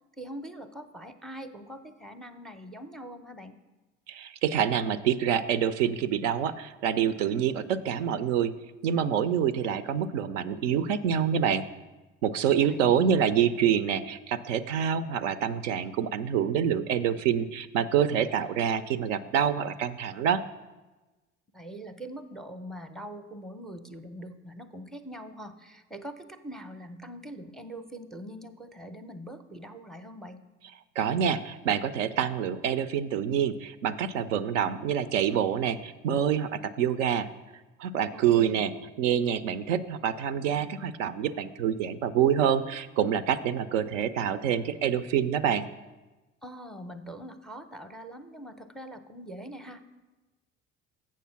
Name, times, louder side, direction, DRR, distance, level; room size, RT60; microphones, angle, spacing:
voice 1, 0.2-3.6 12.5-13.1 21.5-30.4 38.1-38.6 46.4-49.8, right 1 dB, ahead, 9 dB, 0.5 m, -43 dB
voice 2, 4.1-8.5 8.8-11.6 12.2-20.4 31.0-37.3 37.8-38.7 39.0-45.7, right 8 dB, 75° right, 12 dB, 0.5 m, -26 dB
7.4 x 6.5 x 5.7 m, 1.2 s
figure-of-eight pair, 55°, 38 cm